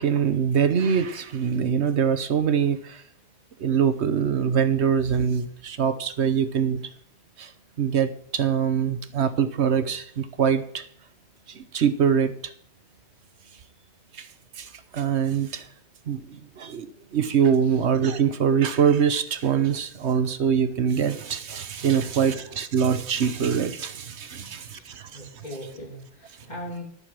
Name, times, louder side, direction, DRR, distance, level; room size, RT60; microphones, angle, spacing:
voice 1, 0.0-3.0 3.6-6.8 7.4-7.5 7.8-10.9 11.5-12.5 14.1-14.3 14.6-15.7 16.1-16.9 17.1-25.1, right 7 dB, 75° right, 11 dB, 1.2 m, -24 dB
voice 2, 24.4-26.8, left 1 dB, 40° left, -1 dB, 3.3 m, -41 dB
11.5 x 6.8 x 7.5 m, 0.62 s
omnidirectional pair, 1.2 m